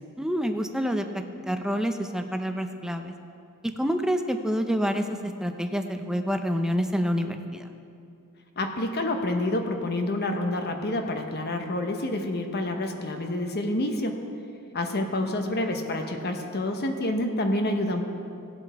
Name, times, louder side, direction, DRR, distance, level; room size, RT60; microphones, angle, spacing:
voice 1, 0.2-3.1 3.6-7.6, equal, 5° right, 6 dB, 0.5 m, -28 dB
voice 2, 8.6-14.2 14.7-18.0, left 1 dB, 45° left, 4 dB, 1.0 m, -28 dB
17.5 x 8.1 x 3.5 m, 2.5 s
head